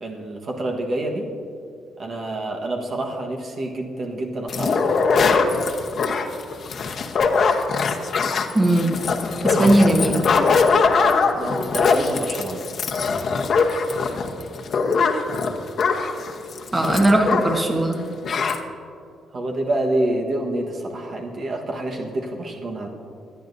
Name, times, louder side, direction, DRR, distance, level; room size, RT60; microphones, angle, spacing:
voice 1, 0.0-1.3 2.0-5.0 9.6-9.8 10.6-12.6 19.3-22.9, right 1 dB, 50° right, 1 dB, 1.4 m, -28 dB
sound 1, 4.5-17.7 17.9-18.0 18.2-18.6, left 4 dB, 55° left, 1.0 m, -21 dB
voice 2, 8.5-8.9 9.4-10.2 16.7-18.0, right 1 dB, 20° right, 2 dB, 1.4 m, -18 dB
25.5 x 9.2 x 2.7 m, 2.6 s
cardioid pair, 90°, 0 cm